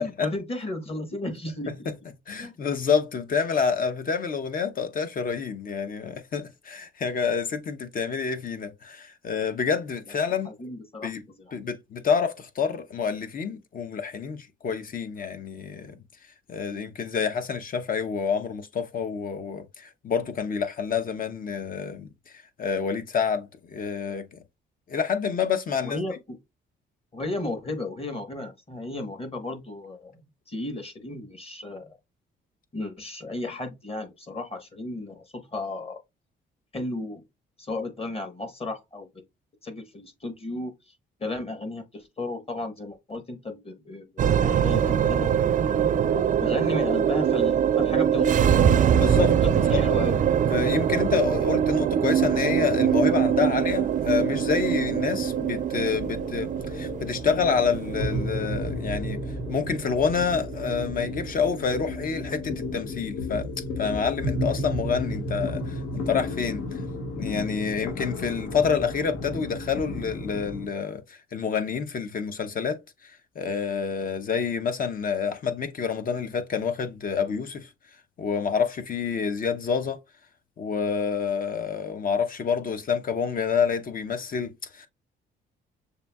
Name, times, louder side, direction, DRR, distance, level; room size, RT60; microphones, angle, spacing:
voice 1, 0.0-1.9 2.4-2.6 10.1-10.2 10.4-11.1 11.4-11.6 25.8-26.4 27.1-30.2 30.5-32.0 32.7-36.0 36.7-37.2 37.6-39.1 39.6-40.7 41.2-45.4 46.1-48.4 49.4-50.2, left 2 dB, 30° left, 1.1 m, -34 dB
voice 2, 2.3-10.5 11.0-11.2 11.5-16.0 16.5-22.1 22.6-24.4 24.9-26.0 49.0-49.8 50.5-59.2 59.5-63.5 63.8-66.8 67.1-73.1 73.4-77.7 78.2-80.0 80.6-84.9, left 6 dB, 45° left, 0.7 m, -28 dB
sound 1, 44.2-62.7, right 8 dB, 40° right, 0.4 m, -24 dB
sound 2, 53.9-70.7, left 1 dB, 85° left, 1.5 m, -33 dB
6.6 x 2.6 x 2.2 m
cardioid pair, 90°, 20 cm